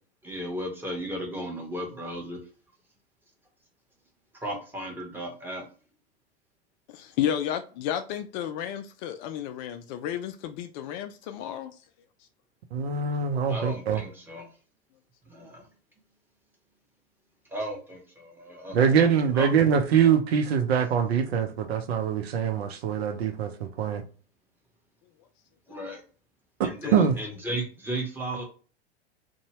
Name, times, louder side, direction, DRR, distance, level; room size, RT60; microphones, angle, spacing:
voice 1, 0.2-2.4 4.3-5.6 13.5-14.5 15.3-15.7 17.5-18.8 19.3-19.5 25.7-26.0 26.6-28.4, right 1 dB, 5° right, 1.1 m, -35 dB
voice 2, 6.9-11.8 26.8-27.1, left 10 dB, 45° left, 0.4 m, -32 dB
voice 3, 12.7-14.0 18.7-24.0 26.9-27.1, right 7 dB, 70° right, 0.7 m, -23 dB
2.7 x 2.2 x 2.9 m
hypercardioid pair, 95°, 33 cm